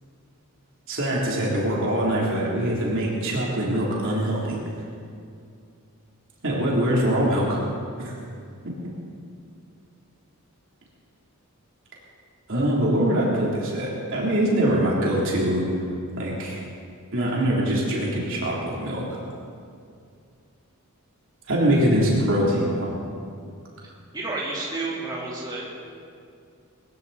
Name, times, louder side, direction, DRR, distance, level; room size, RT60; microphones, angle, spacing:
voice 1, 0.9-4.6 6.4-7.6 8.0-8.1 8.6-8.7 12.5-15.7 16.2-16.6 17.1-19.2 21.5-22.9, right 1 dB, 60° right, -5 dB, 3.6 m, -23 dB
voice 2, 24.1-25.6, right 2 dB, 20° right, -7 dB, 3.9 m, -30 dB
21.0 x 16.0 x 4.3 m, 2.3 s
head